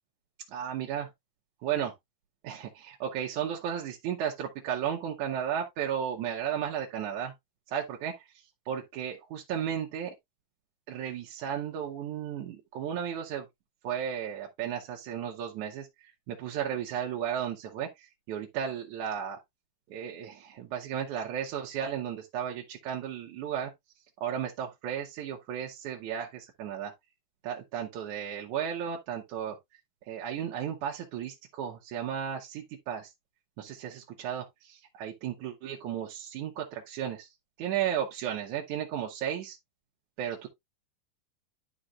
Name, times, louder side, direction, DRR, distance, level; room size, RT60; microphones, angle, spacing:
voice 1, 0.5-1.1 1.6-1.9 2.4-7.3 7.7-8.3 8.7-10.1 10.9-13.5 13.8-15.9 16.3-19.4 19.9-23.7 24.2-26.9 27.4-29.6 30.1-33.1 33.6-37.3 37.6-39.6 40.2-40.5, right 9 dB, 70° right, 2.3 m, -34 dB
11.5 x 5.1 x 2.3 m
omnidirectional pair, 3.8 m